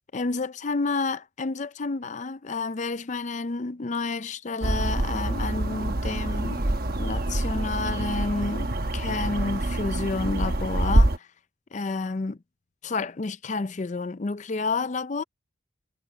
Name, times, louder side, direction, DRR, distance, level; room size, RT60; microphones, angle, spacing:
voice 1, 0.1-6.7 7.0-11.3 11.7-12.4 12.8-15.2, left 3 dB, 35° left, 0.5 m, -30 dB
sound 1, 4.6-11.2, right 1 dB, 50° right, 1.1 m, -26 dB
head